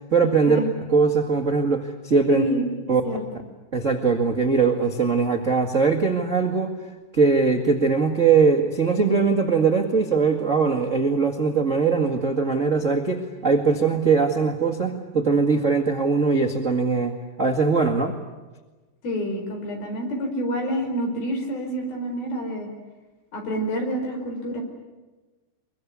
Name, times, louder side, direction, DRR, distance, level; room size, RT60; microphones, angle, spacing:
voice 1, 0.1-0.6 0.9-2.4 2.9-3.0 3.7-6.7 7.1-18.1, right 4 dB, 65° right, 4 dB, 0.7 m, -21 dB
voice 2, 2.3-2.6 2.9-3.2 19.0-22.7 23.3-24.6, equal, 55° left, 3 dB, 6.3 m, -28 dB
24.0 x 23.5 x 9.5 m, 1.2 s
omnidirectional pair, 5.2 m